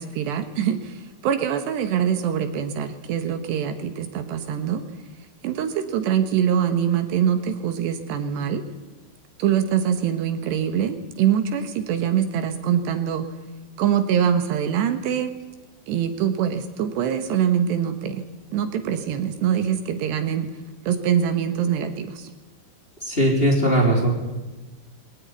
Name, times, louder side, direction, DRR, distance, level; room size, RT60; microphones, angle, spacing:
voice 1, 0.0-4.8 5.4-8.6 9.4-13.3 13.8-15.3 15.9-18.2 18.5-20.5 20.8-22.3, right 9 dB, 75° right, 7 dB, 3.4 m, -24 dB
voice 2, 23.0-24.1, right 1 dB, 15° left, 0 dB, 3.5 m, -19 dB
23.0 x 17.0 x 9.6 m, 1.1 s
omnidirectional pair, 5.2 m